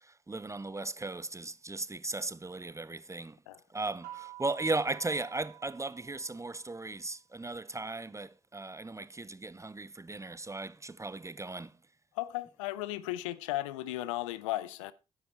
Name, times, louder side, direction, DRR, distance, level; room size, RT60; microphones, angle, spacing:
voice 1, 0.3-3.4 3.7-11.7, right 2 dB, 20° right, 0.6 m, -36 dB
sound 1, 4.0-6.7, right 15 dB, 75° right, 2.6 m, -49 dB
voice 2, 12.1-14.9, left 16 dB, 85° left, 0.5 m, -35 dB
10.0 x 8.3 x 4.6 m
hypercardioid pair, 45°, 16 cm